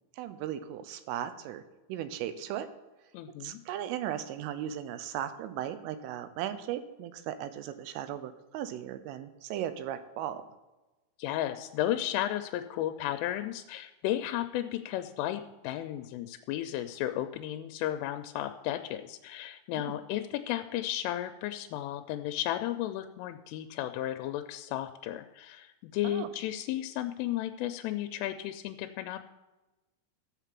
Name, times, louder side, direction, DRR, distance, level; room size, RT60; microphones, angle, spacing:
voice 1, 0.2-1.6 1.9-2.7 3.4-10.4 19.8-19.9 26.0-26.3, right 11 dB, 90° right, 11 dB, 3.4 m, -37 dB
voice 2, 3.1-3.6 11.2-29.3, left 13 dB, 90° left, 8 dB, 3.1 m, -34 dB
14.0 x 5.9 x 7.5 m, 1.1 s
omnidirectional pair, 5.6 m